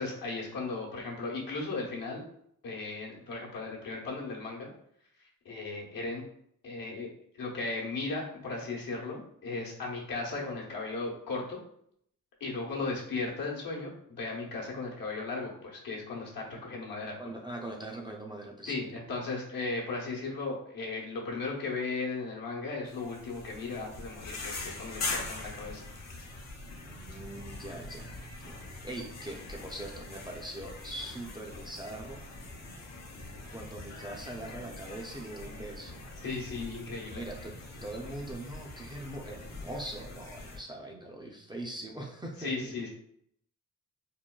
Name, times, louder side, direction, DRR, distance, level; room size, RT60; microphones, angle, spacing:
voice 1, 0.0-2.2 2.6-4.7 5.4-6.2 6.6-7.1 7.3-11.6 12.4-17.2 18.7-25.8 36.2-37.2 42.4-42.9, left 3 dB, 75° left, -2 dB, 0.9 m, -36 dB
voice 2, 17.2-18.8 26.8-28.6 28.8-32.2 33.5-36.0 37.1-42.5, right 1 dB, 15° right, 0 dB, 0.4 m, -42 dB
sound 1, 22.8-40.6, left 2 dB, 50° left, 0.9 m, -43 dB
3.7 x 2.2 x 2.2 m, 0.70 s
cardioid pair, 90°, 34 cm